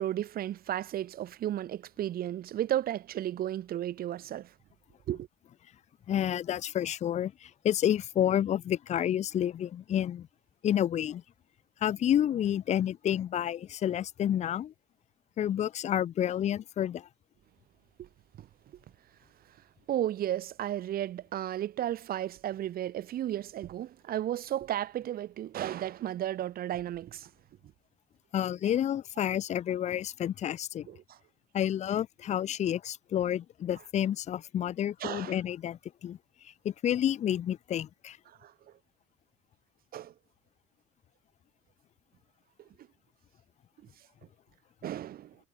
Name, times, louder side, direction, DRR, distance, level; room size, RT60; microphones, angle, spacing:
voice 1, 0.0-4.5 5.1-5.3 18.0-18.1 18.4-18.5 19.9-27.3 30.9-31.2 35.0-35.4 38.4-38.5 39.9-40.1 44.8-45.4, right 12 dB, 60° right, 2.9 m, -34 dB
voice 2, 6.1-10.3 10.6-11.2 11.8-14.7 15.4-17.1 28.3-30.9 31.5-36.2 36.4-38.2, left 10 dB, 40° left, 0.5 m, -29 dB
cardioid pair, 110°, 17 cm